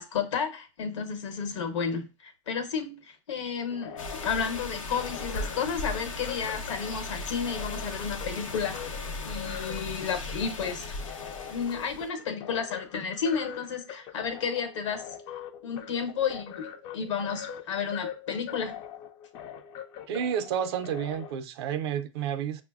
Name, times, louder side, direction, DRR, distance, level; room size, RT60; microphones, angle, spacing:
voice 1, 0.0-8.9 9.2-11.0 11.5-15.1 15.6-18.7, left 6 dB, 70° left, 0.9 m, -32 dB
sound 1, 3.6-21.3, left 9 dB, 30° left, 0.3 m, -43 dB
sound 2, 4.0-12.1, left 2 dB, 90° left, 0.7 m, -37 dB
voice 2, 20.1-22.6, right 8 dB, 55° right, 0.4 m, -30 dB
5.5 x 2.0 x 2.3 m
hypercardioid pair, 125°, 16 cm